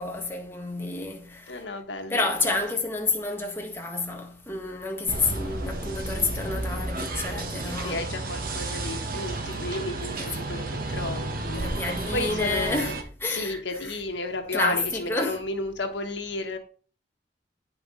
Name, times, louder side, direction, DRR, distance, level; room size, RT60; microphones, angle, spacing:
voice 1, 0.0-1.6 2.1-8.0 10.2-10.3 11.5-14.0 14.5-15.4, left 3 dB, 15° left, 1.6 m, -29 dB
voice 2, 1.5-2.6 7.6-11.8 12.1-12.9 13.3-16.6, left 2 dB, 85° left, 1.5 m, -33 dB
sound 1, 5.1-13.0, right 2 dB, 55° right, 1.3 m, -32 dB
9.2 x 5.9 x 3.9 m
head